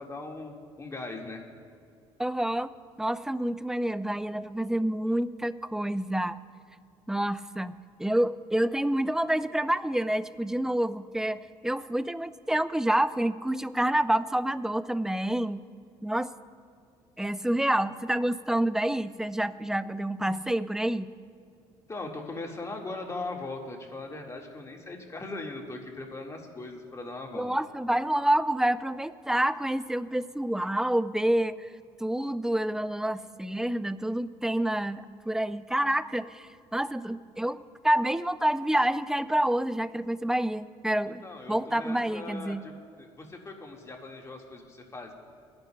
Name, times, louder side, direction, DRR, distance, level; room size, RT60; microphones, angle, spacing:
voice 1, 0.0-1.4 21.9-27.5 41.2-45.1, left 2 dB, 25° left, 1 dB, 1.8 m, -39 dB
voice 2, 2.2-2.7 3.0-6.4 7.1-15.6 16.0-16.3 17.2-21.1 27.3-31.7 32.0-41.2 41.5-42.7, right 1 dB, 5° right, 14 dB, 0.4 m, -28 dB
25.0 x 10.5 x 2.3 m, 2.4 s
supercardioid pair, 80°, 12 cm